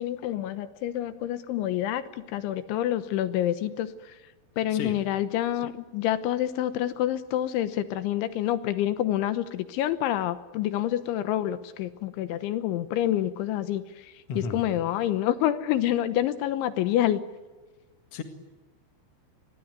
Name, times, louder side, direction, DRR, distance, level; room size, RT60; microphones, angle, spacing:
voice 1, 0.0-4.2 4.6-17.2, left 12 dB, 75° left, 12 dB, 3.3 m, -27 dB
voice 2, 14.3-14.6 18.1-18.2, left 4 dB, 60° left, 7 dB, 1.6 m, -33 dB
28.0 x 22.0 x 9.3 m, 1.2 s
omnidirectional pair, 5.8 m